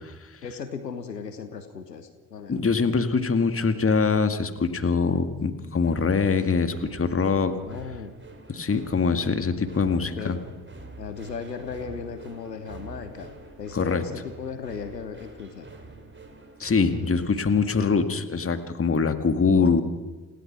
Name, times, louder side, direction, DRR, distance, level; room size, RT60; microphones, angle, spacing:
voice 1, 0.4-2.6 7.6-8.1 10.2-10.4 11.0-15.7 17.7-18.3 19.5-19.8, left 6 dB, 90° left, 10 dB, 0.9 m, -36 dB
voice 2, 2.5-7.6 8.5-10.4 13.7-14.0 16.6-19.8, left 5 dB, 25° left, 8 dB, 2.1 m, -23 dB
sound 1, 5.8-17.7, right 3 dB, 25° right, 4.8 m, -46 dB
28.5 x 17.0 x 6.1 m, 1.3 s
figure-of-eight pair, 45°, 48 cm